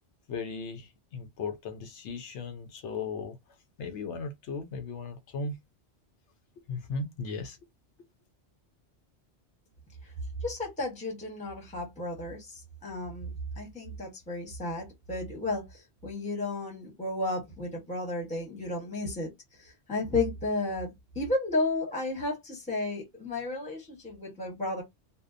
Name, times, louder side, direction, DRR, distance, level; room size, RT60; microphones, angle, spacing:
voice 1, 0.3-3.4 3.8-5.6 6.7-7.6, left 4 dB, 80° left, 1.0 m, -36 dB
voice 2, 10.4-19.3 19.6-20.9 21.1-24.8, left 2 dB, 5° left, 0.8 m, -33 dB
2.7 x 2.1 x 2.4 m
omnidirectional pair, 1.1 m